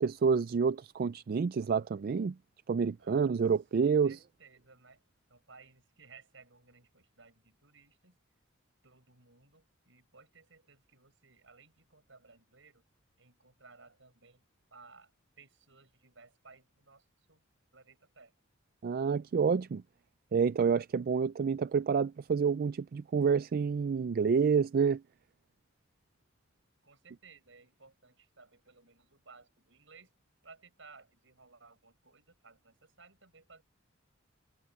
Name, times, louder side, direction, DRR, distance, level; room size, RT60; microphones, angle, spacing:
voice 1, 0.0-2.4 2.7-4.2 18.8-19.8 20.3-25.0, right 6 dB, 50° right, 0.3 m, -28 dB
voice 2, 3.0-3.4 4.0-5.0 5.3-8.2 8.8-12.9 13.2-14.4 14.7-17.4 17.7-18.4 26.8-30.1 30.4-33.6, right 4 dB, 70° right, 7.6 m, -59 dB
head